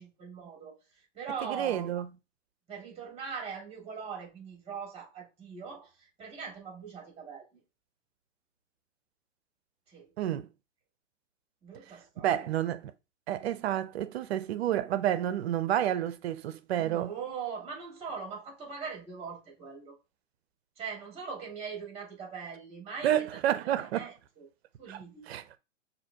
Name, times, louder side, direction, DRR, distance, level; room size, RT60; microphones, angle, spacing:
voice 1, 0.0-1.9 2.7-7.6 9.9-10.1 11.6-12.5 16.8-20.0 20.8-24.5 24.8-25.3, right 6 dB, 15° right, 2.0 m, -41 dB
voice 2, 1.5-2.1 10.2-10.5 12.2-12.9 13.3-17.1 23.0-24.1 24.9-25.0 25.3-25.4, right 11 dB, 55° right, 0.7 m, -29 dB
5.9 x 2.8 x 2.8 m
hypercardioid pair, 140°, 38 cm